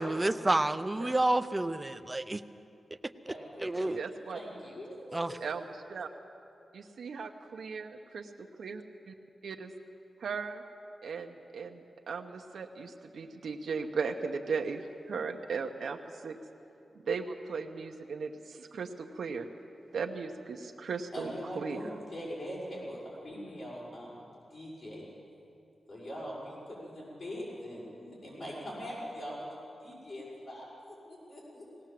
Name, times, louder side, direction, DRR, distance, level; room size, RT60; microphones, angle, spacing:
voice 1, 0.0-2.4 3.6-4.0 5.1-5.3, right 2 dB, 15° right, 10 dB, 0.5 m, -29 dB
voice 2, 3.2-3.9 4.3-5.4 21.1-24.2 24.5-25.0 25.9-31.6, equal, 60° left, -6 dB, 5.9 m, -42 dB
voice 3, 4.0-4.4 5.4-5.6 5.9-6.1 6.7-8.2 8.6-9.1 9.4-9.7 10.2-10.6 11.0-16.0 16.2-16.4 17.0-19.5 19.9-21.8, right 5 dB, 85° right, 3 dB, 0.9 m, -37 dB
19.0 x 18.0 x 7.6 m, 2.7 s
wide cardioid pair, 160°, 0 cm